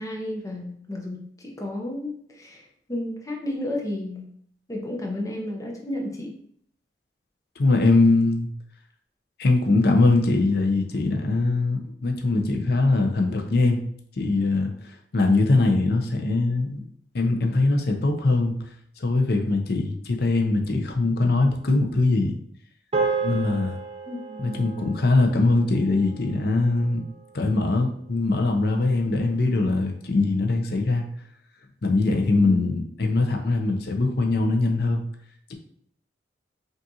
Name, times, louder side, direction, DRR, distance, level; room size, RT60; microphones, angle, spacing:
voice 1, 0.0-2.6 2.9-4.3 4.7-6.4 24.1-24.7 32.4-32.7, left 1 dB, 20° left, 0 dB, 0.7 m, -32 dB
voice 2, 7.6-8.5 9.4-13.8 14.2-16.8 17.1-18.7 19.0-22.3 23.2-23.8 24.4-27.0 27.3-31.1 31.8-35.1, left 2 dB, 65° left, 4 dB, 0.6 m, -22 dB
sound 1, 22.9-27.4, right 4 dB, 35° right, 0.7 m, -32 dB
5.3 x 2.5 x 2.7 m, 0.63 s
head